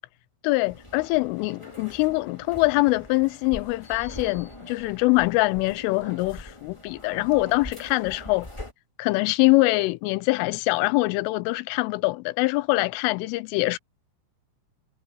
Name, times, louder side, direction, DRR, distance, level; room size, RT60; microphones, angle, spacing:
voice 1, 0.4-8.5 9.0-13.8, left 22 dB, 85° left, 3.2 m, -24 dB
sound 1, 0.7-8.7, left 1 dB, 15° left, 1.2 m, -43 dB
omnidirectional pair, 5.7 m